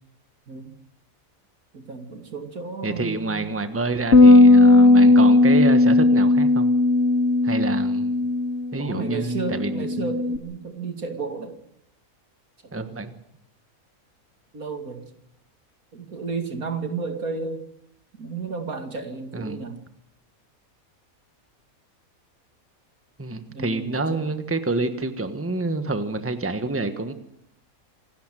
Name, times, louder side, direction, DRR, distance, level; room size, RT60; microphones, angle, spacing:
voice 1, 1.7-3.6 8.8-11.6 12.6-12.7 14.5-15.1 15.9-17.6 18.2-19.8 23.5-24.3, right 4 dB, 80° right, 7 dB, 2.8 m, -33 dB
voice 2, 2.8-6.7 7.4-8.3 8.7-9.9 12.7-13.2 19.3-19.6 23.2-27.1, right 3 dB, 10° right, 9 dB, 1.3 m, -28 dB
sound 1, 4.1-10.4, left 2 dB, 55° left, 1.3 m, -16 dB
27.0 x 12.5 x 9.1 m, 0.77 s
omnidirectional pair, 1.5 m